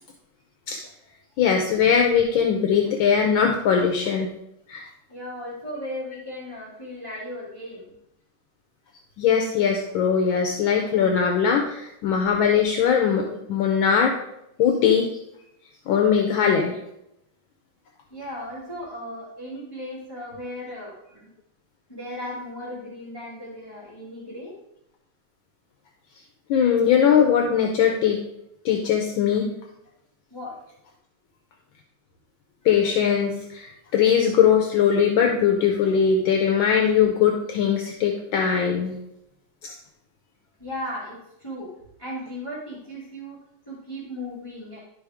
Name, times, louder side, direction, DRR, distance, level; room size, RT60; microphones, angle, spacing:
voice 1, 1.4-4.3 4.7-4.9 9.2-14.2 14.6-15.1 15.9-16.8 26.5-28.2 28.6-29.5 32.6-39.0 39.6-39.7, left 7 dB, 70° left, 3 dB, 1.4 m, -20 dB
voice 2, 5.1-8.0 18.1-21.3 21.9-24.5 30.3-30.5 40.6-41.7 42.0-43.4 43.7-44.8, left 1 dB, 10° left, -8 dB, 1.9 m, -36 dB
11.5 x 4.9 x 3.5 m, 0.84 s
omnidirectional pair, 2.4 m